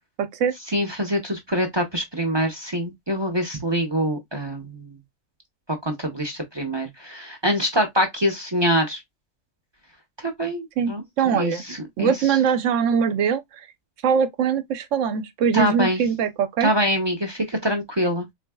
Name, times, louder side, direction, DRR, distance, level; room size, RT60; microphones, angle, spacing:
voice 1, 0.2-0.5 10.8-11.6 12.0-13.4 14.0-16.7, right 7 dB, 65° right, 1.0 m, -22 dB
voice 2, 0.7-5.0 5.8-9.0 10.2-12.1 15.5-16.0 16.6-18.3, equal, 25° right, 0.6 m, -25 dB
4.2 x 3.0 x 2.2 m
omnidirectional pair, 1.5 m